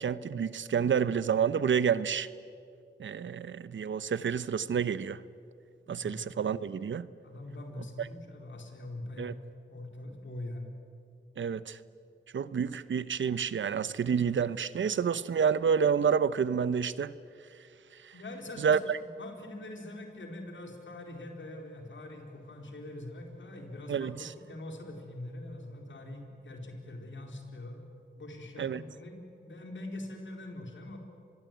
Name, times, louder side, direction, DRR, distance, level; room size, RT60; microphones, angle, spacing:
voice 1, 0.0-2.3 3.0-5.2 5.9-7.1 8.0-8.1 9.2-9.3 11.4-11.8 12.3-17.2 18.0-18.1 18.6-19.0 23.9-24.3 28.6-28.8, right 7 dB, 75° right, 17 dB, 0.9 m, -29 dB
voice 2, 5.8-6.3 7.2-9.4 9.7-10.7 18.1-18.8 19.2-27.8 28.1-31.0, left 1 dB, 75° left, 3 dB, 4.3 m, -43 dB
25.5 x 21.5 x 9.2 m, 2.4 s
cardioid pair, 45°, 20 cm